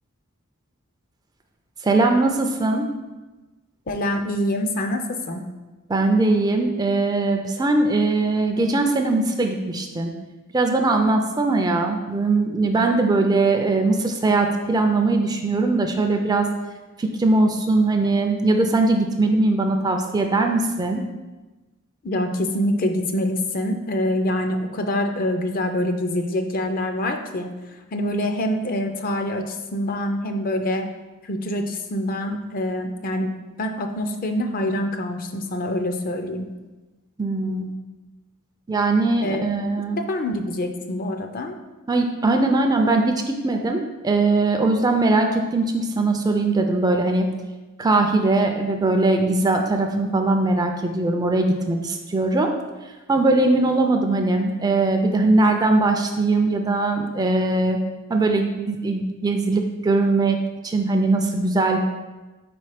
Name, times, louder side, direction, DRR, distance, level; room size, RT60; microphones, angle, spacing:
voice 1, 1.8-2.9 5.9-10.1 10.5-16.5 17.0-21.0 37.2-37.7 38.7-40.0 41.9-47.3 47.8-52.5 53.1-57.8 58.1-60.4 60.6-61.8, right 2 dB, 20° right, 4 dB, 0.4 m, -20 dB
voice 2, 3.9-5.4 22.0-27.5 27.9-30.9 31.2-33.3 33.6-36.5 39.2-39.5 40.0-41.6, left 1 dB, 40° left, 5 dB, 0.5 m, -25 dB
4.5 x 4.3 x 4.9 m, 1.2 s
head